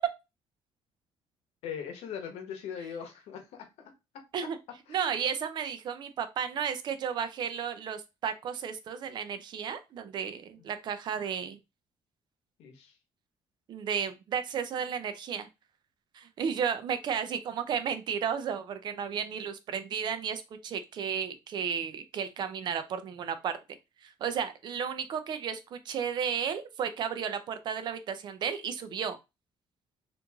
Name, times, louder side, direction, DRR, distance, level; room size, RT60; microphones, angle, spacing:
voice 1, 1.6-3.9 4.9-5.2 12.6-13.0, left 7 dB, 85° left, 0.9 m, -40 dB
voice 2, 4.9-11.6 13.7-15.5 16.1-23.5 24.0-29.2, right 7 dB, 45° right, 0.4 m, -33 dB
3.0 x 2.5 x 3.4 m
cardioid pair, 170°, 10 cm